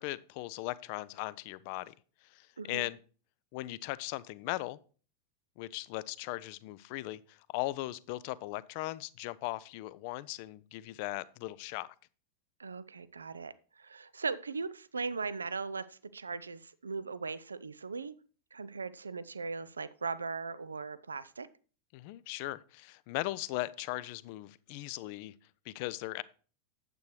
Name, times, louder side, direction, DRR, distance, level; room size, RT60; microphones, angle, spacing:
voice 1, 0.0-1.9 2.2-3.0 3.5-4.8 5.6-11.9 21.9-25.3 25.7-26.2, left 18 dB, 45° left, 18 dB, 0.4 m, -38 dB
voice 2, 12.6-18.1 18.5-21.5, right 4 dB, 75° right, 16 dB, 0.4 m, -39 dB
9.1 x 7.9 x 3.2 m, 0.38 s
figure-of-eight pair, 90°, 0 cm